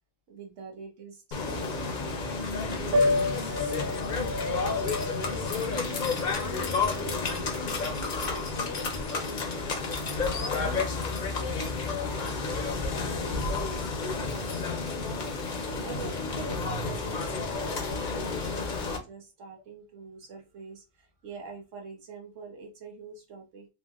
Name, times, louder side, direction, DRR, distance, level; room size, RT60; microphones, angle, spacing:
voice 1, 0.3-2.4 15.8-23.7, right 4 dB, 75° right, 1.2 m, -45 dB
sound 1, 1.3-19.0, left 4 dB, 45° left, 0.7 m, -31 dB
Piano, 2.9-8.8, left 1 dB, 50° right, 0.7 m, -31 dB
voice 2, 3.4-9.3 10.3-11.0 11.3-13.8, left 5 dB, 85° left, 1.1 m, -42 dB
3.2 x 2.8 x 2.3 m
omnidirectional pair, 1.3 m